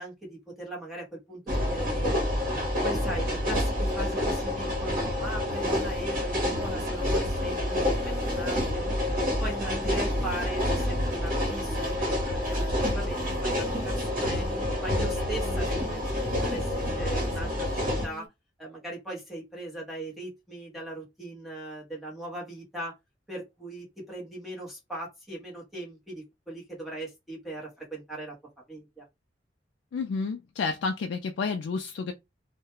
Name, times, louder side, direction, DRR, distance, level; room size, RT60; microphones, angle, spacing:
voice 1, 0.0-2.3 2.8-8.9 9.4-14.5 14.8-18.3 18.6-23.0 23.3-28.4 28.7-29.1, right 1 dB, ahead, 0.9 m, -39 dB
sound 1, 1.5-18.1, left 1 dB, 50° right, 1.1 m, -28 dB
Singing, 5.5-14.9 15.3-18.3, right 1 dB, 20° right, 0.4 m, -44 dB
voice 2, 29.9-32.1, left 4 dB, 75° left, 0.4 m, -30 dB
2.3 x 2.1 x 2.9 m
head